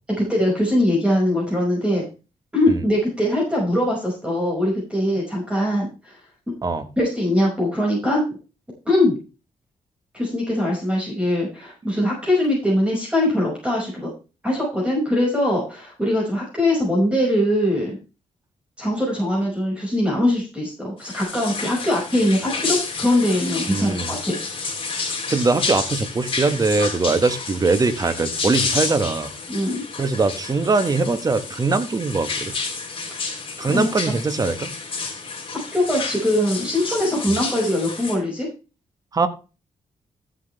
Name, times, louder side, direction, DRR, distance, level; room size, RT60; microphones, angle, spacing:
voice 1, 0.2-2.1 2.5-6.2 7.0-8.2 8.9-9.2 10.1-14.1 14.4-18.0 18.8-24.4 29.5-29.8 33.6-33.9 35.7-38.5, left 1 dB, 10° right, -3 dB, 5.7 m, -22 dB
sound 1, 21.0-38.2, left 4 dB, 40° left, 3.5 m, -30 dB
voice 2, 23.7-24.1 25.3-29.3 30.0-32.5 33.6-34.7 37.3-37.4 39.1-39.3, right 3 dB, 25° right, 9 dB, 1.4 m, -21 dB
14.5 x 7.9 x 3.4 m, 0.32 s
wide cardioid pair, 130°, 14 cm